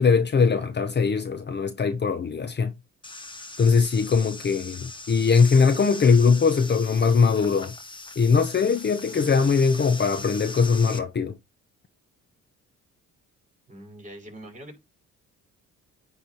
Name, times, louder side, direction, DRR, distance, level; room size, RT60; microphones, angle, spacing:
voice 1, 0.0-2.7 3.6-7.7 8.2-11.3, left 5 dB, 35° left, 0.9 m, -21 dB
sound 1, 3.0-11.0, left 2 dB, 15° left, 1.5 m, -40 dB
voice 2, 13.7-14.8, right 1 dB, 25° right, 5.3 m, -43 dB
9.7 x 3.6 x 4.5 m
cardioid pair, 90°, 30 cm